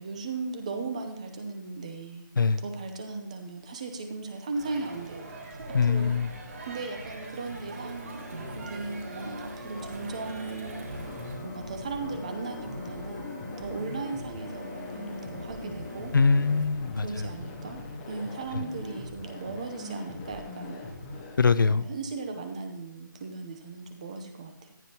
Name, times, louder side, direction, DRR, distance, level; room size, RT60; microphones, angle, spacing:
voice 1, 0.0-2.3 2.6-5.4 5.8-6.1 6.6-8.2 8.5-10.8 11.4-13.3 13.6-16.1 17.0-17.8 18.1-20.8 21.7-24.8, right 3 dB, 20° right, 6 dB, 0.7 m, -37 dB
Crowd, 4.5-11.3, right 2 dB, 40° right, 4.5 m, -42 dB
voice 2, 5.7-6.3 16.1-17.3 18.5-18.6 21.4-21.9, left 4 dB, 75° left, 14 dB, 0.7 m, -23 dB
sound 1, 7.4-16.6, left 1 dB, 60° right, 2.3 m, -43 dB
sound 2, 10.8-21.4, left 2 dB, 10° left, 0.9 m, -41 dB
15.0 x 9.4 x 2.9 m, 0.84 s
hypercardioid pair, 175°, 11 cm